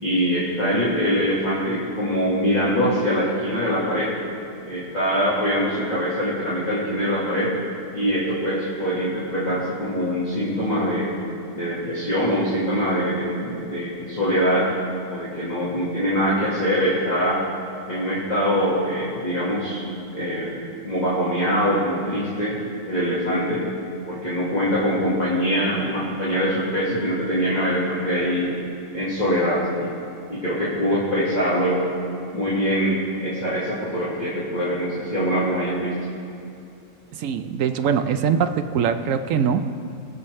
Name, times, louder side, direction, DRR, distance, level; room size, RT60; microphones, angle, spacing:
voice 1, 0.0-4.1 4.6-7.5 7.9-11.1 11.5-14.7 15.1-17.4 17.9-19.8 20.1-20.5 20.8-22.6 22.9-23.6 24.1-28.5 28.9-29.9 30.3-31.9 32.3-35.9, equal, 35° left, -9 dB, 1.8 m, -23 dB
voice 2, 37.1-39.7, right 7 dB, 75° right, 9 dB, 1.0 m, -22 dB
21.0 x 7.1 x 3.2 m, 2.6 s
omnidirectional pair, 1.4 m